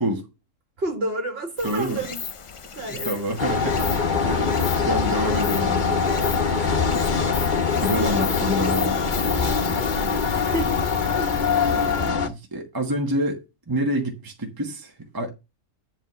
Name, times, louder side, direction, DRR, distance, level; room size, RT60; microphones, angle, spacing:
voice 1, 0.8-2.2 2.8-3.2 3.6-4.4 6.5-7.0 9.6-10.8 11.1-11.3, right 1 dB, 50° right, 2.1 m, -32 dB
Stream, 1.6-12.1, left 6 dB, 60° left, 0.3 m, -36 dB
voice 2, 1.6-2.0 2.8-6.1 6.7-7.1 7.8-9.0 10.3-10.5 11.7-15.3, equal, 15° right, 1.3 m, -28 dB
sound 1, 3.4-12.3, left 5 dB, 40° left, 1.2 m, -23 dB
10.5 x 3.6 x 6.8 m
omnidirectional pair, 1.3 m